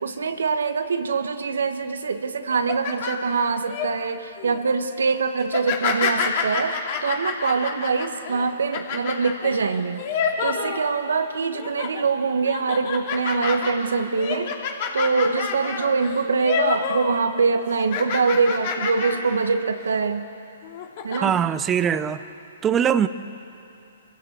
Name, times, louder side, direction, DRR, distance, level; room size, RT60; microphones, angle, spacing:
voice 1, 0.0-14.5 14.9-20.3 21.0-21.4, right 4 dB, 80° right, 8 dB, 1.5 m, -24 dB
sound 1, 2.5-3.9 4.4-4.7 5.4-11.2 11.5-12.0 12.4-17.2 17.4-19.4 19.8-19.9 20.6-21.2, left 6 dB, 50° left, 2.8 m, -28 dB
voice 2, 21.2-22.2 22.6-23.1, right 8 dB, 20° right, 13 dB, 0.8 m, -21 dB
26.5 x 15.5 x 8.2 m, 2.7 s
hypercardioid pair, 135°, 0 cm